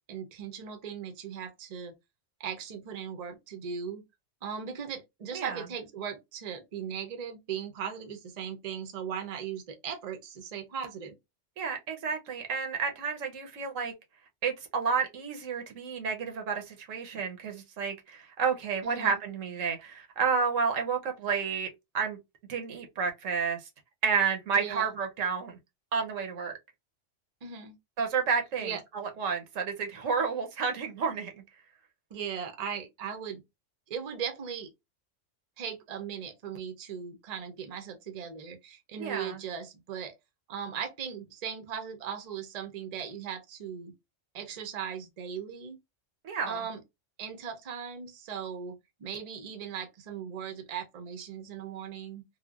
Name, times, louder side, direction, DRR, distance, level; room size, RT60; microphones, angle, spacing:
voice 1, 0.0-1.9 2.4-4.0 4.4-11.2 18.8-19.2 24.6-24.9 27.4-27.8 28.6-28.8 32.1-33.4 33.9-34.7 35.6-40.1 40.5-43.9 44.3-45.8 46.5-46.8 47.2-52.2, right 7 dB, 45° right, 0.6 m, -38 dB
voice 2, 5.3-5.6 11.6-13.9 14.4-21.7 21.9-22.2 22.5-23.6 24.0-25.6 25.9-26.6 28.0-31.3 39.0-39.4 46.2-46.6, right 5 dB, 85° right, 1.1 m, -30 dB
3.1 x 2.1 x 2.3 m
omnidirectional pair, 1.3 m